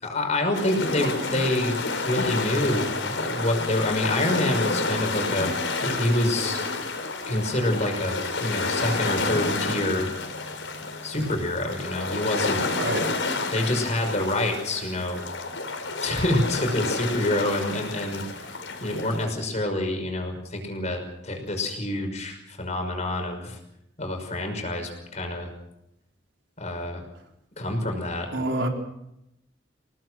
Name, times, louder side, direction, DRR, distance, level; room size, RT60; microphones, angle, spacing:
voice 1, 0.0-6.6 7.3-10.1 11.0-12.6 13.5-15.2 16.0-23.6 24.0-25.5 26.6-27.0 27.6-28.3, left 1 dB, 35° left, 4 dB, 5.8 m, -27 dB
sound 1, 0.5-19.2, left 3 dB, 85° left, 4.3 m, -30 dB
voice 2, 28.3-28.7, right 1 dB, 80° right, 2 dB, 4.1 m, -26 dB
28.5 x 18.5 x 6.3 m, 0.83 s
head